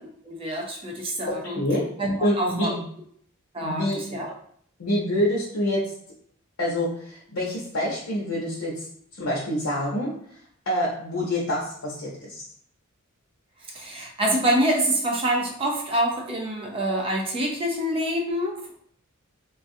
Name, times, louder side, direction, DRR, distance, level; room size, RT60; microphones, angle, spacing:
voice 1, 0.2-1.6 2.0-2.7 3.5-3.9 4.1-4.3 13.7-18.7, right 1 dB, 25° right, 1 dB, 0.4 m, -26 dB
voice 2, 1.3-1.8 2.2-2.8 3.6-4.0 4.8-5.8 6.6-8.8 9.2-10.1 10.7-12.4, left 1 dB, 85° left, -5 dB, 0.7 m, -26 dB
3.2 x 2.3 x 2.6 m, 0.62 s
head